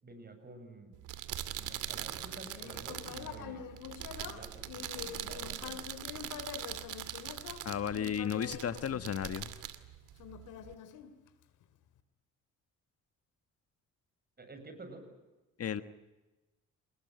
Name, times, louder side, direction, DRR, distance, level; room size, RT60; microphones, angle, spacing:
voice 1, 0.0-0.9 1.6-3.7 4.2-5.8 14.4-15.1, right 3 dB, 30° right, 8 dB, 7.7 m, -50 dB
sound 1, 0.9-10.7, right 12 dB, 85° right, 2.4 m, -42 dB
Human voice, 2.2-9.6 10.2-11.6, left 9 dB, 90° left, 2.6 m, -46 dB
voice 2, 7.6-9.5 15.6-15.8, left 8 dB, 50° left, 11 dB, 1.4 m, -34 dB
28.5 x 20.0 x 9.3 m, 1.1 s
cardioid pair, 90°, 30 cm